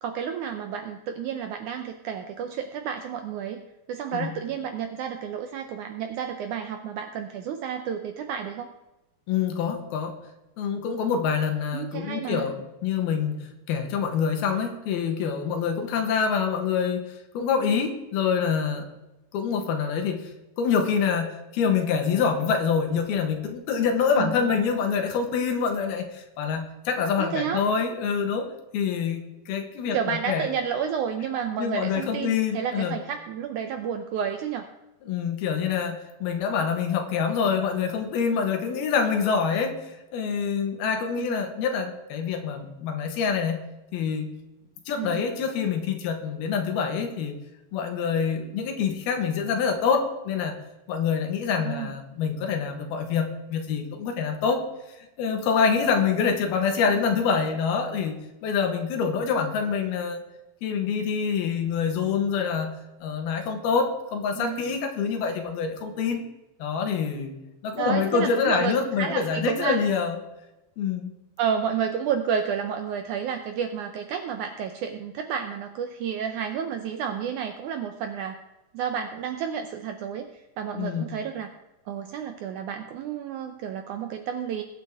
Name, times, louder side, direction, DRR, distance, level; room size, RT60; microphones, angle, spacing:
voice 1, 0.0-8.7 11.7-12.5 24.2-24.5 27.2-27.6 29.9-34.7 41.2-41.4 44.9-45.2 51.5-51.9 59.1-59.2 64.3-64.7 67.8-69.8 71.4-78.4 78.7-81.5 81.9-84.6, right 7 dB, 80° right, 6 dB, 1.8 m, -31 dB
voice 2, 9.3-10.2 10.6-19.0 19.3-20.3 20.6-30.5 31.6-33.0 35.0-43.6 43.9-44.4 44.9-47.4 47.7-50.6 50.9-54.7 55.2-60.2 60.6-62.7 63.0-66.2 66.6-67.3 67.6-70.2 70.8-71.1 80.8-81.2, left 6 dB, 90° left, 5 dB, 3.3 m, -26 dB
21.0 x 8.3 x 3.6 m, 0.98 s
omnidirectional pair, 4.3 m